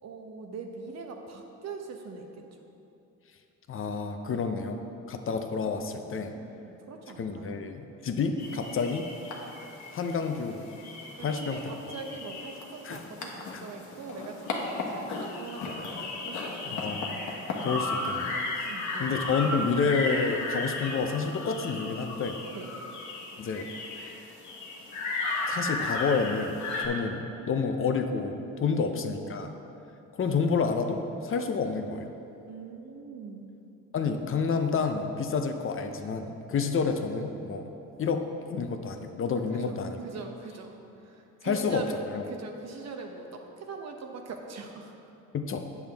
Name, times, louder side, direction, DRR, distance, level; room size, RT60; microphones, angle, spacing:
voice 1, 0.0-2.4 5.2-5.3 6.3-7.6 11.2-17.0 18.6-19.1 22.5-22.7 28.8-29.5 32.5-33.6 39.5-42.0 42.3-44.9, right 4 dB, 60° right, 3 dB, 0.9 m, -42 dB
voice 2, 3.7-4.8 5.1-6.3 7.2-9.1 9.9-10.6 11.2-11.6 12.8-13.0 13.5-13.6 16.7-17.2 17.6-18.7 19.0-22.4 23.4-23.7 25.5-29.5 30.2-32.1 33.9-37.7 38.0-40.0 41.4-41.8 42.1-42.2 45.3-45.7, left 5 dB, 45° left, 6 dB, 0.7 m, -29 dB
sound 1, 8.4-26.9, left 2 dB, 70° left, 1.2 m, -35 dB
8.6 x 7.1 x 3.5 m, 2.8 s
cardioid pair, 90°, 30 cm